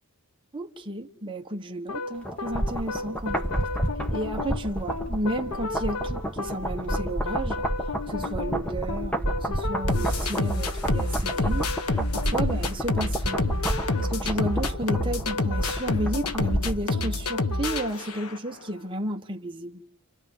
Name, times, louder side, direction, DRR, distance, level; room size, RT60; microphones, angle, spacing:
voice 1, 0.5-3.6 4.1-7.7 8.0-13.5 13.9-19.8, right 1 dB, 25° right, 1.3 m, -32 dB
sound 1, 1.9-18.5, left 2 dB, 85° left, 1.2 m, -30 dB
sound 2, 2.2-16.9 17.2-17.3, right 1 dB, 5° left, 1.4 m, -30 dB
30.0 x 28.0 x 5.5 m
head